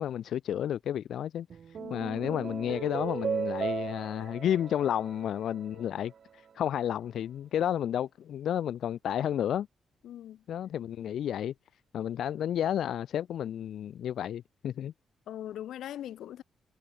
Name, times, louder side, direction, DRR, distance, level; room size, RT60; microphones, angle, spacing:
voice 1, 0.0-1.5 1.9-9.7 10.5-11.5 11.9-14.9, left 10 dB, 70° left, 0.7 m, -31 dB
sound 1, 1.5-6.1, right 7 dB, 45° right, 2.1 m, -36 dB
voice 2, 1.8-2.1 10.0-10.4 15.3-16.4, left 11 dB, 85° left, 1.5 m, -41 dB
wide cardioid pair, 155°, 0 cm